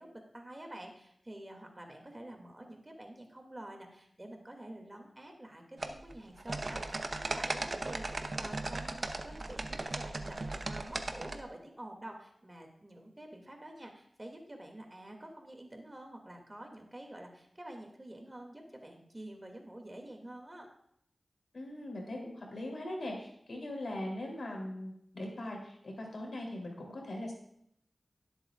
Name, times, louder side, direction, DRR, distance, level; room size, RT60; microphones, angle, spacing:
voice 1, 0.0-8.1 8.4-10.4 10.6-20.7, right 1 dB, 30° right, 3 dB, 2.4 m, -48 dB
sound 1, 5.8-11.4, right 2 dB, 60° right, 0.9 m, -37 dB
voice 2, 21.5-27.3, left 1 dB, 80° left, 0 dB, 3.2 m, -40 dB
18.0 x 8.0 x 2.5 m, 0.71 s
cardioid pair, 45°, 0 cm